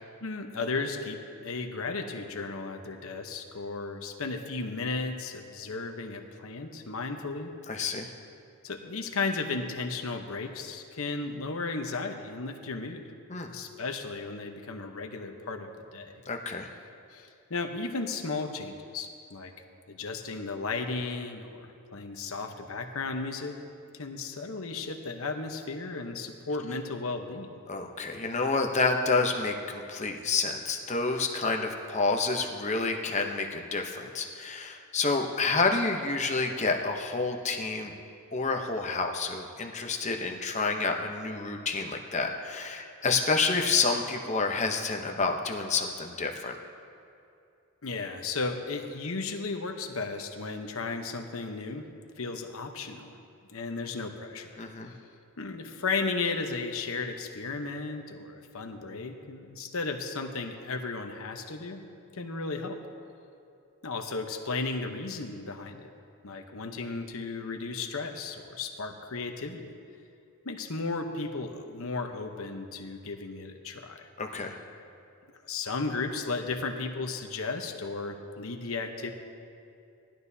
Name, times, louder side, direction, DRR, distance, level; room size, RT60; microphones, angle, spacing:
voice 1, 0.2-7.5 8.6-13.0 13.5-16.1 17.1-19.5 19.9-23.6 23.9-27.5 47.8-51.8 52.2-53.2 53.5-54.6 55.4-61.8 62.1-62.8 63.8-65.9 66.2-69.7 70.4-74.1 75.4-79.1, left 3 dB, 70° left, 5 dB, 0.9 m, -34 dB
voice 2, 7.7-8.1 13.3-13.5 16.3-16.7 27.7-37.9 38.3-46.6 54.6-54.9 74.2-74.6, left 4 dB, 30° left, 3 dB, 0.8 m, -29 dB
18.5 x 12.0 x 2.8 m, 2.5 s
head